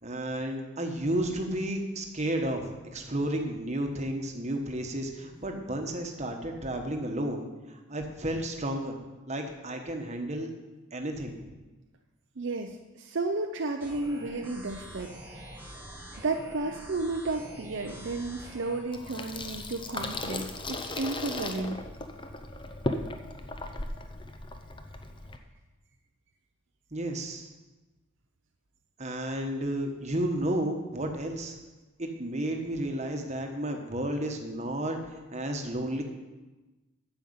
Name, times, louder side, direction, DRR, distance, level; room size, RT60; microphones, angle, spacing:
voice 1, 0.0-9.0 9.3-10.5 10.9-11.4 26.9-27.5 29.0-31.6 32.0-36.0, right 1 dB, 30° right, 3 dB, 1.2 m, -32 dB
voice 2, 12.4-15.6 16.2-21.8, right 3 dB, 55° right, 4 dB, 0.6 m, -33 dB
sound 1, 13.8-18.8, equal, 10° right, 2.0 m, -45 dB
Water tap faucet / Sink (filling or washing), 18.9-25.4, left 2 dB, 20° left, 0.7 m, -37 dB
9.3 x 7.1 x 7.9 m, 1.2 s
head